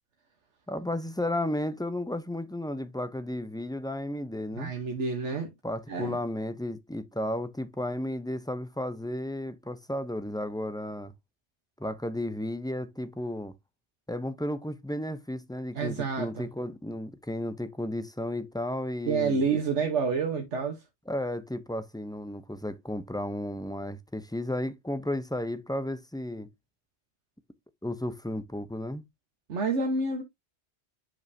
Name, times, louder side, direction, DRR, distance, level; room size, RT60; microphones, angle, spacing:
voice 1, 0.7-4.7 5.6-11.1 11.8-13.5 14.1-19.5 21.1-26.5 27.8-29.0, left 1 dB, 5° left, 0.5 m, -33 dB
voice 2, 4.5-5.5 5.9-6.2 15.7-16.5 19.1-20.8 29.5-30.2, right 4 dB, 80° right, 1.5 m, -28 dB
9.2 x 5.4 x 2.7 m
omnidirectional pair, 1.2 m